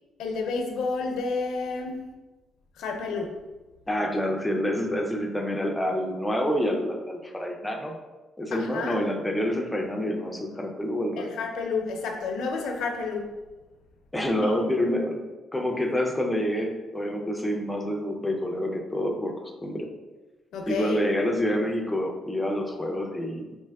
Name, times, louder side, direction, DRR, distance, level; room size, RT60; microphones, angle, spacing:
voice 1, 0.2-2.0 2.8-3.3 8.5-9.0 11.2-13.3 14.4-14.5 20.5-21.0, left 4 dB, 80° left, 3 dB, 0.5 m, -30 dB
voice 2, 3.9-8.0 8.4-11.4 14.1-15.2 15.5-19.3 19.6-19.9 20.7-23.6, equal, 5° left, 1 dB, 0.5 m, -27 dB
4.4 x 2.9 x 2.3 m, 1.2 s
cardioid pair, 125°, 0 cm